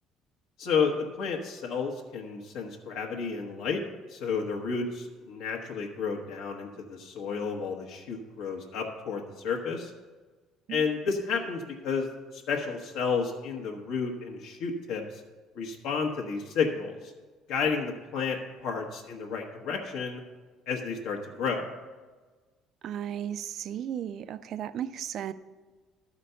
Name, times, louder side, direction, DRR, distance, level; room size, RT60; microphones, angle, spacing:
voice 1, 0.6-3.8 4.1-9.9 10.7-12.1 12.3-15.2 15.5-17.1 17.5-20.2 20.7-21.7, left 5 dB, 70° left, 0 dB, 1.1 m, -31 dB
voice 2, 22.8-25.3, right 10 dB, 45° right, 14 dB, 0.4 m, -35 dB
12.5 x 5.1 x 6.8 m, 1.3 s
cardioid pair, 170°, 0 cm